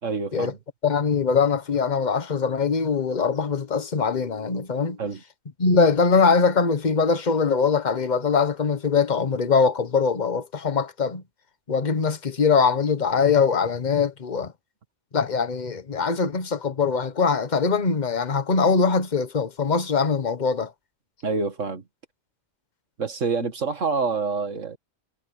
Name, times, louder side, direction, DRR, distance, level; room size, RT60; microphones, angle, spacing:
voice 1, 0.0-0.6 5.0-5.2 21.2-21.8 23.0-24.8, right 4 dB, 65° right, 2.3 m, -27 dB
voice 2, 0.8-5.0 5.6-11.2 11.7-14.5 15.1-20.7, left 5 dB, 35° left, 1.3 m, -22 dB
omnidirectional pair, 1.4 m